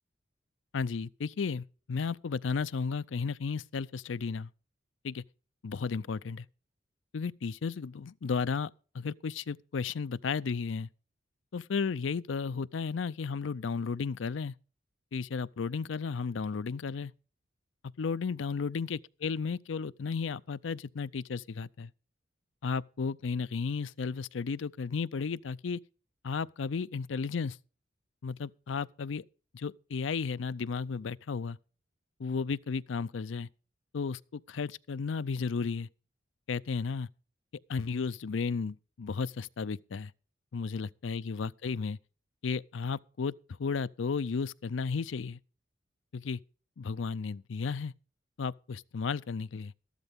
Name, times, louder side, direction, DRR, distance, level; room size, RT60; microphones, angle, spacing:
voice 1, 0.7-4.5 5.0-5.2 5.6-6.5 7.1-10.9 11.5-14.5 15.1-17.1 18.0-21.9 22.6-25.8 26.2-27.6 28.2-29.2 29.5-31.6 32.2-33.5 33.9-35.9 36.5-37.1 37.7-40.1 40.5-42.0 42.4-43.3 43.6-45.4 46.1-46.4 46.8-47.9 48.4-49.7, left 5 dB, 85° left, 0.5 m, -34 dB
13.5 x 12.0 x 3.6 m
head